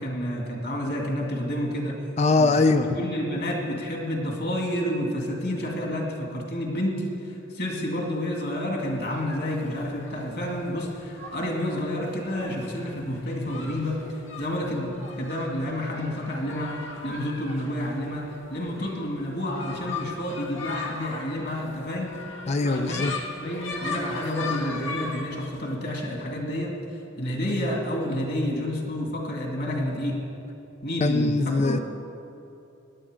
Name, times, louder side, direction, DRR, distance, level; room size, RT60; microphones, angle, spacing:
voice 1, 0.0-2.0 2.4-14.0 14.4-22.1 22.6-23.0 23.4-26.8 27.2-30.2 30.8-31.8, left 1 dB, 55° left, 0 dB, 2.3 m, -29 dB
voice 2, 2.2-3.0 22.5-23.1 31.0-31.8, left 3 dB, 35° left, 8 dB, 0.4 m, -22 dB
sound 1, 8.8-25.8, left 4 dB, 80° left, 1.5 m, -39 dB
17.0 x 10.5 x 5.1 m, 2.8 s
head